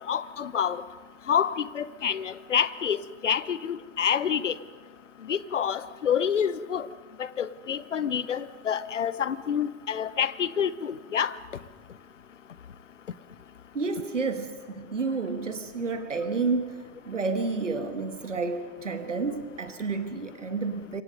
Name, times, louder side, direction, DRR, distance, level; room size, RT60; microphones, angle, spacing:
voice 1, 0.1-0.8 1.3-3.0 3.2-4.5 5.3-6.9 7.2-11.3, left 8 dB, 80° left, 17 dB, 0.8 m, -27 dB
voice 2, 13.7-21.0, right 4 dB, 85° right, 9 dB, 1.5 m, -30 dB
27.0 x 23.5 x 5.4 m, 1.5 s
figure-of-eight pair, 65°, 36 cm